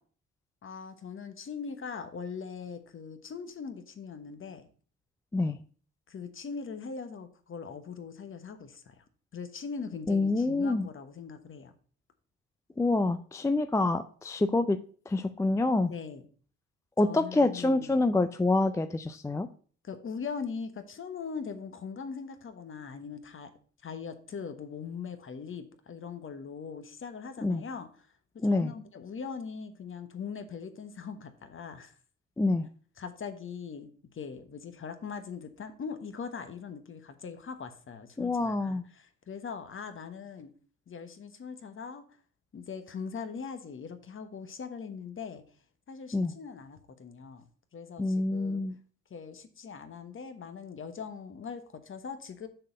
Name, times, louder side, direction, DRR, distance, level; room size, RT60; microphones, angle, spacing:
voice 1, 0.6-4.7 6.1-9.0 9.3-11.7 15.9-16.2 17.0-18.1 19.8-23.5 23.8-28.1 28.4-31.9 33.0-40.5 40.9-42.0 42.5-45.4 45.9-47.4 47.7-48.6 49.1-52.5, left 6 dB, 45° left, 9 dB, 1.2 m, -41 dB
voice 2, 10.1-10.9 12.8-14.8 15.1-15.9 17.0-19.5 27.4-27.6 28.4-28.7 32.4-32.7 38.2-38.8 46.1-46.3 48.0-48.8, left 2 dB, 10° left, 10 dB, 0.4 m, -27 dB
6.6 x 4.1 x 6.4 m, 0.43 s
cardioid pair, 90°, 30 cm